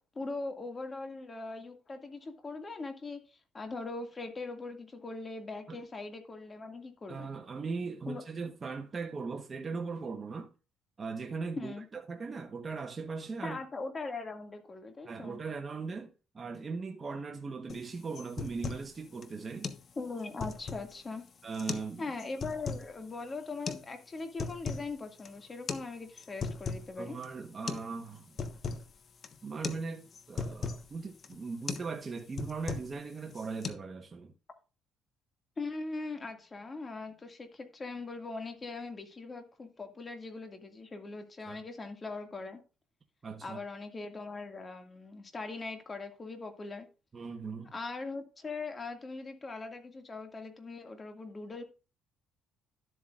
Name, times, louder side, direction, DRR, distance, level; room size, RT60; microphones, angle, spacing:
voice 1, 0.2-7.3 8.1-8.2 11.6-11.8 13.4-15.4 20.0-21.2 21.7-27.2 35.6-42.6 43.4-46.9 47.7-51.6, left 3 dB, 25° left, 2.1 m, -41 dB
voice 2, 7.1-10.5 11.0-13.6 15.0-19.7 21.4-22.0 27.0-28.3 29.4-34.3 41.4-41.6 43.2-43.6 47.1-47.7, right 4 dB, 30° right, 1.1 m, -39 dB
sound 1, 17.7-17.8 18.2-18.9 19.2-19.3 19.6-19.8 20.2-21.0 21.5-21.9 22.2-22.9 23.7-23.8 24.2-24.9 25.2-25.3 25.7-25.9 26.2-26.9 27.2-27.3 27.7-27.9 28.2-28.9 29.2-29.4 29.6-29.8 30.1-30.8 31.2-31.4 31.7-31.9 32.2-33.0 33.3-33.7, left 5 dB, 40° left, 1.2 m, -37 dB
12.5 x 7.9 x 2.5 m
cardioid pair, 115°, 0 cm